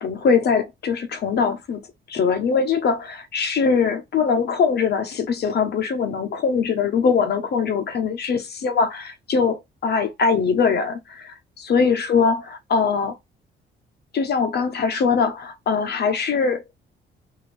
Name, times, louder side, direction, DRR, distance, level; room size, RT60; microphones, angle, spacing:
voice 1, 0.0-1.8 2.1-11.3 11.7-13.2 14.1-16.8, left 5 dB, 55° left, 0.8 m, -22 dB
2.7 x 2.5 x 3.3 m
cardioid pair, 90°, 20 cm